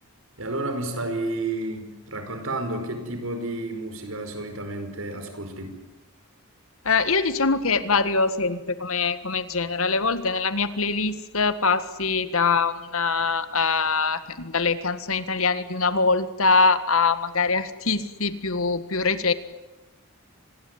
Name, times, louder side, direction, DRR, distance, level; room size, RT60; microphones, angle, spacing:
voice 1, 0.4-5.8, right 2 dB, 70° right, 7 dB, 5.2 m, -31 dB
voice 2, 6.8-19.3, left 4 dB, 70° left, 12 dB, 1.7 m, -23 dB
26.5 x 20.0 x 9.8 m, 1.0 s
head